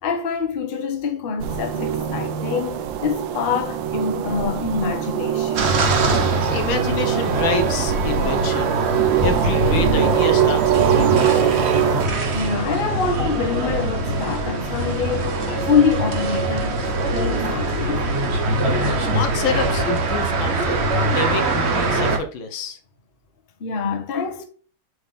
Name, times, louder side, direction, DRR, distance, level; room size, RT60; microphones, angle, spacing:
voice 1, 0.0-5.7 12.3-18.1 23.6-24.4, left 6 dB, 35° left, 1.0 m, -25 dB
sound 1, 1.4-12.1, right 10 dB, 70° right, 1.3 m, -23 dB
sound 2, 5.5-22.2, right 2 dB, 45° right, 0.9 m, -22 dB
voice 2, 6.5-8.8 9.2-11.6 19.0-22.8, left 4 dB, 75° left, 1.6 m, -28 dB
7.9 x 3.8 x 3.6 m
omnidirectional pair, 2.3 m